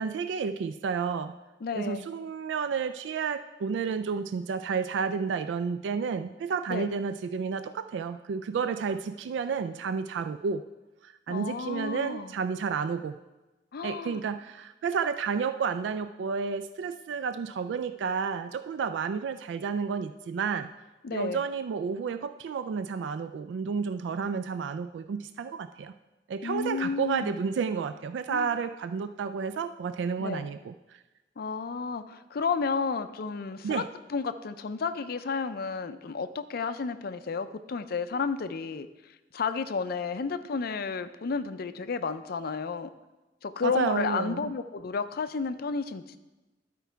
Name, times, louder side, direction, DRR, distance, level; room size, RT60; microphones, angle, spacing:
voice 1, 0.0-1.3 1.7-10.6 11.0-13.2 13.8-20.7 21.1-25.9 26.3-31.0 33.6-33.9 43.6-44.5, right 5 dB, 75° right, 11 dB, 0.3 m, -31 dB
voice 2, 1.6-2.1 6.7-6.9 11.3-12.3 13.7-14.2 21.0-21.4 26.4-27.3 28.3-28.5 30.2-30.5 31.4-33.8 34.1-38.9 39.3-42.9 43.4-46.2, left 5 dB, 55° left, 11 dB, 0.5 m, -32 dB
12.0 x 4.6 x 4.5 m, 1.1 s
head